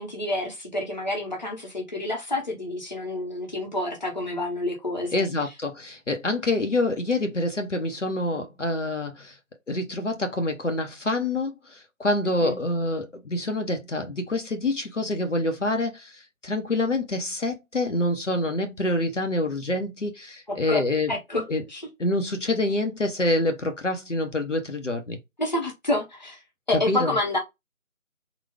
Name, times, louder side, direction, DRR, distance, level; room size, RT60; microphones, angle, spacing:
voice 1, 0.0-5.5 12.4-12.6 20.5-20.8 21.1-21.4 21.7-21.8 25.4-26.4 26.7-27.4, left 2 dB, 30° left, 1.0 m, -28 dB
voice 2, 5.1-9.4 9.7-21.1 21.5-21.6 22.0-25.2 26.9-27.1, left 2 dB, 60° left, 0.9 m, -26 dB
4.0 x 2.3 x 3.5 m
figure-of-eight pair, 165°, 42 cm